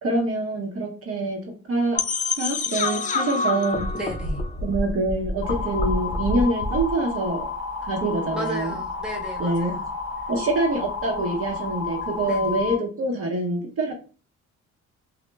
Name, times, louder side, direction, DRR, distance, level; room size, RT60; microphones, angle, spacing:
voice 1, 0.0-1.4 1.7-2.0 2.4-3.8 4.6-7.5 7.8-8.7 9.4-9.7 10.3-13.9, right 2 dB, 50° right, 1 dB, 0.8 m, -25 dB
sound 1, 1.9-6.9, left 3 dB, 25° left, 0.3 m, -27 dB
voice 2, 3.9-4.4 8.3-9.9 12.2-12.6, right 1 dB, 5° right, -2 dB, 0.9 m, -34 dB
sound 2, 5.4-12.8, left 4 dB, 45° left, 0.9 m, -31 dB
2.1 x 2.0 x 3.2 m, 0.35 s
cardioid pair, 90°, 30 cm